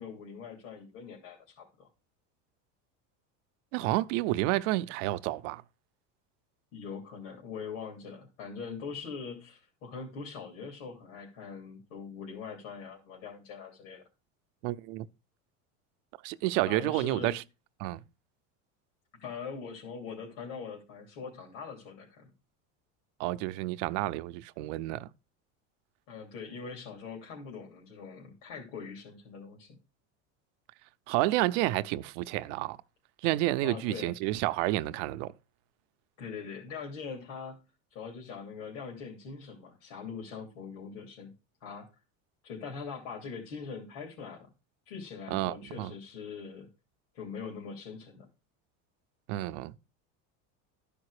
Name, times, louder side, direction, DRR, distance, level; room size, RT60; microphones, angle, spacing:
voice 1, 0.0-1.9 6.7-14.0 16.7-17.4 19.2-22.3 26.1-29.7 33.6-34.1 36.2-37.6 37.9-41.3 41.6-41.9 42.4-44.5 44.9-46.7 47.1-48.3, left 5 dB, 80° left, 3.1 m, -42 dB
voice 2, 3.7-5.6 14.6-15.1 16.2-17.4 17.8-18.0 23.2-25.1 31.1-32.8 33.2-35.3 45.3-45.9 49.3-49.8, right 17 dB, 70° right, 0.6 m, -30 dB
12.5 x 5.2 x 4.9 m
cardioid pair, 160°, 38 cm